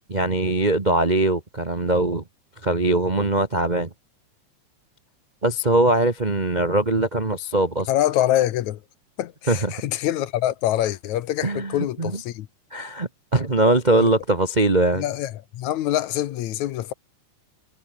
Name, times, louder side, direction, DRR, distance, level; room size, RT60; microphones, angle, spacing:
voice 1, 0.1-2.2 2.6-3.9 5.4-7.9 9.5-9.7 11.4-12.1 12.7-15.0, right 2 dB, 65° right, 0.4 m, -21 dB
voice 2, 7.9-8.8 9.2-12.5 14.0-14.1 15.0-16.9, left 13 dB, 70° left, 2.2 m, -25 dB
omnidirectional pair, 3.7 m